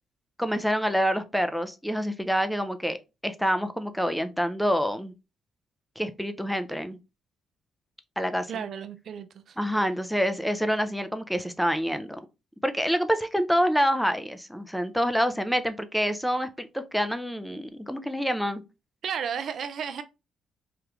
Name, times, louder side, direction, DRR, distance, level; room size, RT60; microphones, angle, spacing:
voice 1, 0.4-3.0 3.2-5.1 6.0-7.0 8.2-8.6 9.6-12.2 12.6-18.6, equal, ahead, 0.4 m, -27 dB
voice 2, 8.5-9.6 19.0-20.0, right 7 dB, 60° right, 0.4 m, -33 dB
3.3 x 2.4 x 2.9 m
cardioid pair, 90°, 0 cm